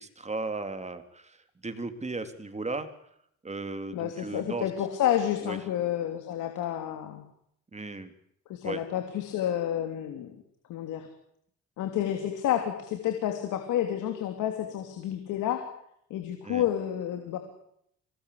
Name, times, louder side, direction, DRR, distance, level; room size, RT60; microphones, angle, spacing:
voice 1, 0.0-2.9 3.4-4.7 5.4-5.6 7.7-8.1 8.6-8.8 16.4-16.7, right 3 dB, 20° right, 8 dB, 3.3 m, -36 dB
voice 2, 3.9-7.2 8.5-10.3 10.7-11.1 11.8-15.7 16.1-17.4, left 11 dB, 90° left, 6 dB, 3.2 m, -30 dB
25.5 x 19.0 x 8.5 m, 0.72 s
cardioid pair, 90°, 30 cm